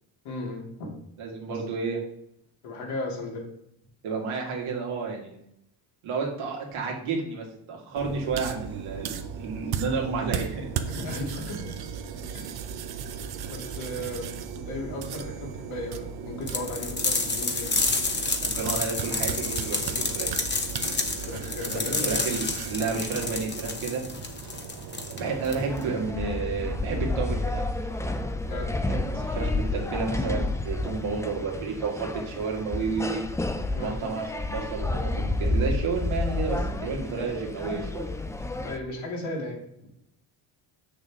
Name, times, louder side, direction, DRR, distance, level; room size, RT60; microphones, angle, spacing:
voice 1, 0.2-0.9 1.5-1.6 2.6-3.4 10.9-11.8 12.3-12.6 13.5-17.9 21.3-22.1 28.5-28.7 33.7-33.9 38.6-39.9, left 1 dB, 75° left, -2 dB, 2.9 m, -35 dB
voice 2, 1.2-2.0 4.0-5.4 6.0-10.7 12.1-12.2 18.4-20.3 21.7-24.0 25.1-27.6 28.8-33.2 33.8-38.1, right 4 dB, 75° right, 0 dB, 2.2 m, -31 dB
sound 1, 8.0-26.1, right 7 dB, 50° right, 0.8 m, -36 dB
sound 2, 16.5-25.9, left 3 dB, 20° left, 1.1 m, -29 dB
sound 3, 25.2-38.8, left 2 dB, 5° left, 0.4 m, -30 dB
6.8 x 6.5 x 3.6 m, 0.77 s
cardioid pair, 90°, 49 cm